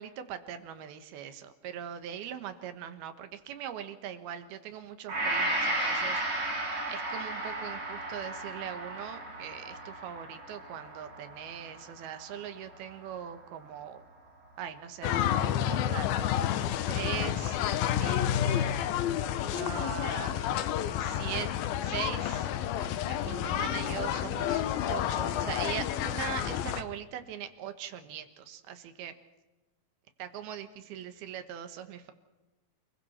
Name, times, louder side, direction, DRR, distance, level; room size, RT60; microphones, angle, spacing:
voice 1, 0.0-6.2 6.9-14.0 14.6-16.1 16.9-18.9 19.5-20.4 21.0-21.5 21.8-22.5 23.1-29.1 30.2-32.1, right 9 dB, 85° right, 9 dB, 3.2 m, -41 dB
Gong, 5.1-13.4 13.9-14.0, right 1 dB, 50° right, 7.8 m, -35 dB
sound 1, 15.0-26.8, left 10 dB, 80° left, 2.7 m, -30 dB
28.0 x 21.5 x 4.3 m, 1.1 s
omnidirectional pair, 4.3 m